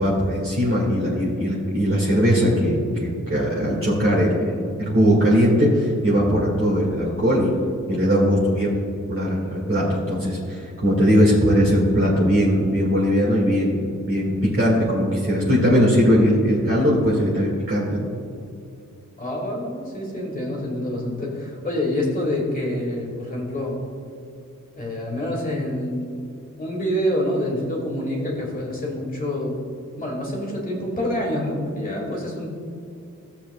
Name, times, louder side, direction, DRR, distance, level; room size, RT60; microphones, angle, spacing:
voice 1, 0.0-7.5 7.9-8.7 9.1-18.1, equal, 45° right, -5 dB, 1.9 m, -20 dB
voice 2, 19.2-23.8 24.8-26.1 26.6-29.6 30.0-32.5, left 1 dB, 25° left, -3 dB, 1.9 m, -26 dB
15.5 x 7.3 x 2.3 m, 2.5 s
wide cardioid pair, 125°, 31 cm